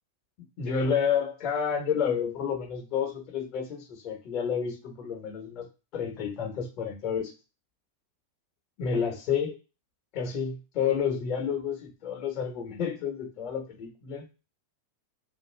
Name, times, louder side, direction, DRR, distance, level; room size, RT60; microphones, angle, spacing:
voice 1, 0.6-5.7 5.9-7.3 8.8-9.5 10.1-14.2, left 7 dB, 40° left, 0 dB, 1.2 m, -30 dB
2.9 x 2.4 x 3.4 m, 0.30 s
figure-of-eight pair, 90°, 0 cm